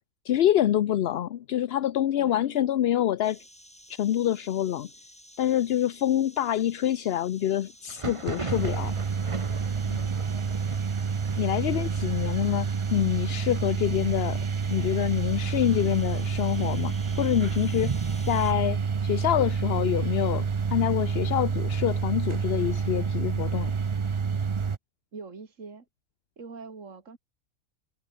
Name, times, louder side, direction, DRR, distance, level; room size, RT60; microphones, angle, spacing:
voice 1, 0.3-3.4 3.9-4.9 5.4-8.9 11.4-14.4 14.7-18.0 18.3-20.5 20.7-23.7, left 11 dB, 60° left, 0.7 m, -26 dB
voice 2, 2.2-2.6 9.9-10.3 11.7-11.9 25.1-25.9 26.4-27.2, right 4 dB, 60° right, 2.8 m, -43 dB
sound 1, 3.2-18.5, equal, 5° left, 4.9 m, -52 dB
Thunder, 7.8-17.4 17.6-18.3 18.6-19.6 20.0-21.7, right 3 dB, 25° right, 1.2 m, -42 dB
sound 2, 8.5-24.8, right 5 dB, 45° right, 0.4 m, -28 dB
omnidirectional pair, 1.5 m